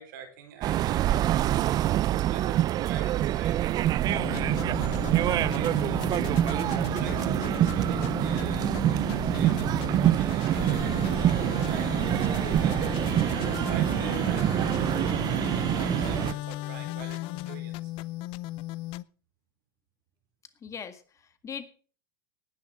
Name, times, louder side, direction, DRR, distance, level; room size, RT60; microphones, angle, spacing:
voice 1, 0.0-1.5 2.1-6.1 6.8-13.1 13.5-17.9, right 7 dB, 65° right, 7 dB, 4.1 m, -45 dB
sound 1, 0.6-16.3, right 13 dB, 35° right, 0.5 m, -26 dB
sound 2, 4.0-19.0, left 17 dB, 50° left, 0.7 m, -36 dB
voice 2, 20.6-21.7, left 7 dB, 25° left, 10 dB, 1.9 m, -41 dB
18.5 x 10.5 x 3.7 m, 0.41 s
hypercardioid pair, 100°, 11 cm